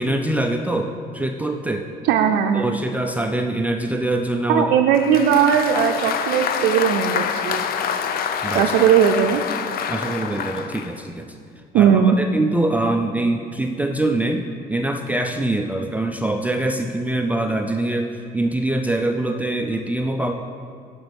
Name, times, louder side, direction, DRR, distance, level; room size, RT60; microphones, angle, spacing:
voice 1, 0.0-1.9 2.5-4.8 8.4-8.7 9.9-11.4 11.7-20.3, right 1 dB, 10° right, 4 dB, 0.5 m, -24 dB
voice 2, 2.1-2.8 4.5-7.6 8.5-9.4 11.7-12.2, right 8 dB, 85° right, 3 dB, 0.5 m, -18 dB
Applause, 4.9-11.0, left 7 dB, 60° left, 0.6 m, -26 dB
12.0 x 5.3 x 5.3 m, 2.1 s
cardioid pair, 110°, 17 cm